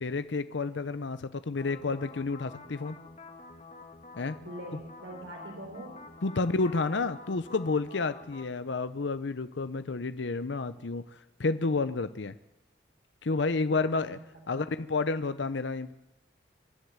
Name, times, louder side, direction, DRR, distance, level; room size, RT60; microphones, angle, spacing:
voice 1, 0.0-3.0 4.2-4.4 6.2-11.0 11.4-12.3 13.2-14.2 14.5-15.9, left 3 dB, 75° left, 13 dB, 0.7 m, -30 dB
sound 1, 1.6-8.4, left 3 dB, 35° left, 1.6 m, -49 dB
voice 2, 4.4-6.0 13.7-14.2 14.5-14.6, right 1 dB, 90° right, 0 dB, 3.9 m, -43 dB
25.5 x 11.5 x 9.4 m, 0.92 s
head